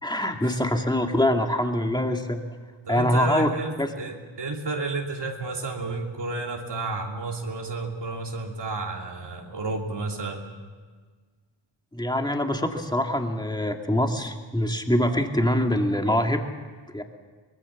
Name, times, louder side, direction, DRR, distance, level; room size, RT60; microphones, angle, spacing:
voice 1, 0.0-2.4 2.9-3.5 3.8-3.9 11.9-16.4 16.9-17.0, left 1 dB, 10° left, 4 dB, 2.3 m, -24 dB
voice 2, 2.9-10.5, right 3 dB, 60° right, 0 dB, 3.0 m, -31 dB
24.0 x 19.5 x 7.3 m, 1.5 s
cardioid pair, 80°, 46 cm